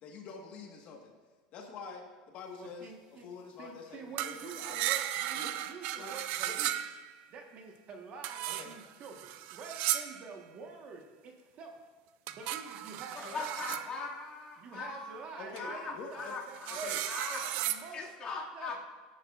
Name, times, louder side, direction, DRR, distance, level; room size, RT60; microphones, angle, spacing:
voice 1, 0.0-1.1 1.5-4.8 5.3-5.5 6.0-6.1 6.4-6.6 8.5-8.7 15.3-16.3 16.7-17.0, left 4 dB, 45° left, 1 dB, 1.5 m, -46 dB
voice 2, 2.6-3.3 3.6-6.7 7.3-11.8 12.3-13.7 14.6-17.0 17.3-18.3 18.5-18.8, right 4 dB, 35° right, 3 dB, 1.4 m, -47 dB
sound 1, 4.2-7.2 8.2-10.3 12.3-13.9 15.6-15.7 16.2-17.9, right 13 dB, 55° right, 0.5 m, -35 dB
voice 3, 13.1-17.6 17.9-18.8, left 4 dB, 30° left, -3 dB, 2.2 m, -41 dB
17.0 x 10.0 x 2.5 m, 1.4 s
supercardioid pair, 150°, 3 cm